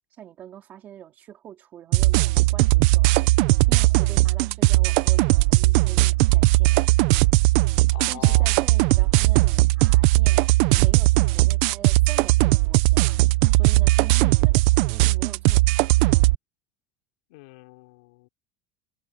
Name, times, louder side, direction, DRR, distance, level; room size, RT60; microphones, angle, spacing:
voice 1, 0.2-3.3 3.7-6.8 7.3-7.8 8.1-10.4 10.8-13.2 13.5-16.1, right 10 dB, 25° right, 3.3 m, -44 dB
sound 1, 1.9-16.3, right 21 dB, 55° right, 0.7 m, -18 dB
voice 2, 7.9-8.5 17.3-18.3, left 24 dB, 65° left, 3.4 m, -43 dB
supercardioid pair, 175°, 6 cm